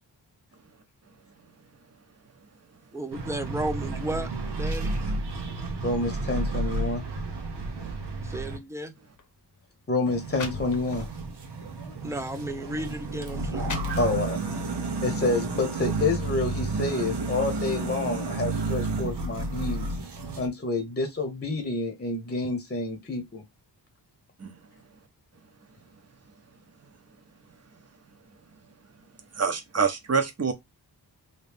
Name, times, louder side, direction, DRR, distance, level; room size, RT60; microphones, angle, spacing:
voice 1, 2.9-4.3 4.6-4.9 8.2-8.9 12.0-13.8, right 1 dB, 5° right, 0.5 m, -33 dB
sound 1, 3.1-8.6 10.1-20.5, right 3 dB, 90° right, 0.9 m, -31 dB
voice 2, 5.8-7.0 9.9-11.1 14.0-14.4 15.0-19.9 20.4-23.4, left 2 dB, 25° left, 0.9 m, -28 dB
sound 2, 9.0-9.2 10.0-10.1 10.3-11.2 11.8-11.9 12.7-12.8 13.3-14.5, left 4 dB, 50° left, 0.8 m, -39 dB
voice 3, 29.3-30.5, right 5 dB, 40° right, 0.8 m, -26 dB
3.1 x 2.7 x 3.3 m
wide cardioid pair, 115°, 40 cm